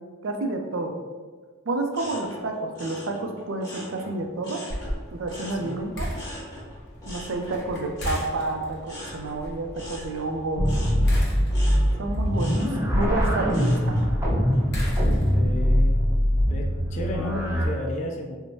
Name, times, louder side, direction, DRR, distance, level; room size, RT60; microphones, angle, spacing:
voice 1, 0.2-0.9 1.7-4.6 5.1-6.1 7.1-10.7 12.0-12.6 12.9-14.1, right 2 dB, 70° right, 4 dB, 0.4 m, -29 dB
sound 1, 1.9-4.9 5.3-14.1 14.5-15.0, equal, 20° left, 1.2 m, -42 dB
sound 2, 4.7-15.6, equal, 55° left, 0.8 m, -37 dB
voice 2, 5.5-5.8 15.2-16.0 16.5-18.4, left 1 dB, 35° left, 1 dB, 0.3 m, -33 dB
sound 3, 10.6-17.7, equal, 15° right, 0.7 m, -22 dB
4.5 x 2.1 x 2.7 m, 1.4 s
head